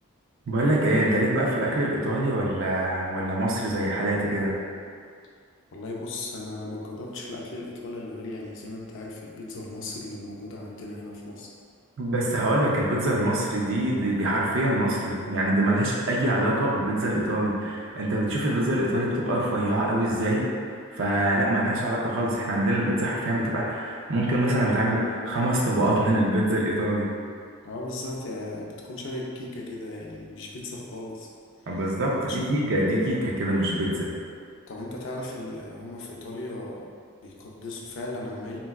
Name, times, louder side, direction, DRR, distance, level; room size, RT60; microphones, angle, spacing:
voice 1, 0.5-4.5 12.0-20.5 20.9-27.1 31.7-34.1, right 1 dB, 60° right, -4 dB, 0.5 m, -24 dB
voice 2, 5.7-11.5 27.6-31.3 32.2-32.6 34.7-36.9 37.2-38.6, left 2 dB, 60° left, -2 dB, 0.5 m, -36 dB
3.9 x 2.2 x 2.3 m, 2.1 s
head